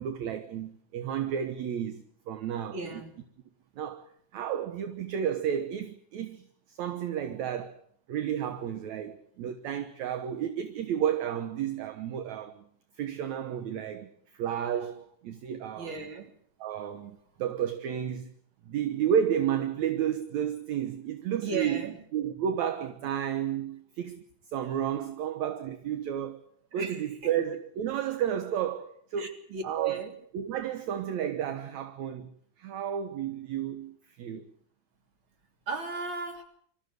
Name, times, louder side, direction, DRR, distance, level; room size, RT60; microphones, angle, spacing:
voice 1, 0.0-3.0 3.8-4.1 4.3-7.8 8.1-12.6 13.0-16.0 16.6-18.3 18.7-21.8 22.1-24.2 24.5-26.4 26.7-30.0 30.3-32.3 32.6-34.5, right 9 dB, 65° right, 2.3 m, -32 dB
voice 2, 2.7-3.1 15.8-16.3 21.4-22.0 26.8-27.3 29.2-30.2 35.7-36.4, right 5 dB, 35° right, 3.7 m, -35 dB
25.5 x 14.0 x 9.4 m
omnidirectional pair, 3.9 m